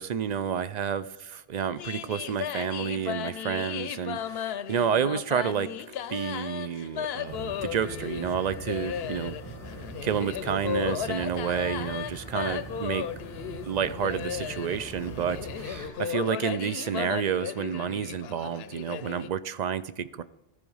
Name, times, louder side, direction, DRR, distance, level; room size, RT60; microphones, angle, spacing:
voice 1, 0.0-5.7 6.1-9.4 10.0-13.1 13.7-20.2, right 8 dB, 55° right, 14 dB, 0.5 m, -30 dB
sound 1, 1.8-19.3, left 9 dB, 75° left, 0.8 m, -35 dB
sound 2, 7.2-15.9, right 2 dB, 20° right, 2.2 m, -43 dB
14.0 x 4.9 x 5.4 m, 0.96 s
omnidirectional pair, 1.0 m